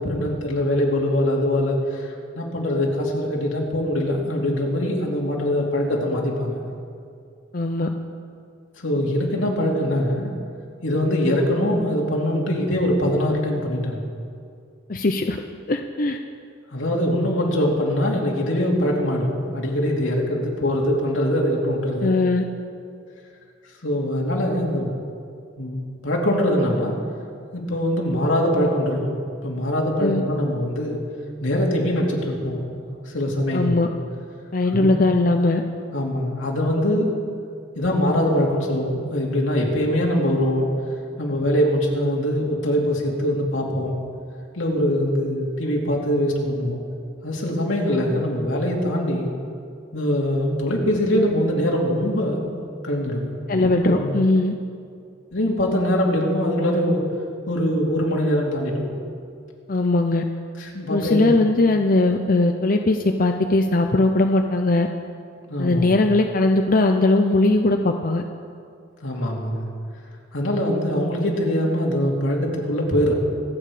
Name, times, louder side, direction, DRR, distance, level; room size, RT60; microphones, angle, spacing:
voice 1, 0.0-6.6 8.8-10.3 10.8-14.1 16.7-22.1 23.8-25.2 25.6-26.9 27.5-29.2 29.4-31.0 31.4-33.9 34.7-35.0 35.9-37.1 37.8-40.7 41.2-44.0 44.5-46.8 47.2-49.3 49.9-54.1 55.3-57.0 57.5-59.0 60.6-61.3 65.5-65.9 69.0-69.7 70.3-73.1, equal, 85° left, -1 dB, 2.8 m, -23 dB
voice 2, 7.5-7.9 14.9-15.4 15.7-16.2 22.0-22.4 30.0-30.2 33.5-33.9 34.5-35.6 53.5-54.5 59.7-60.2 60.9-64.9 65.6-68.2, left 2 dB, 45° left, 5 dB, 0.6 m, -19 dB
26.0 x 8.9 x 5.0 m, 2.3 s
head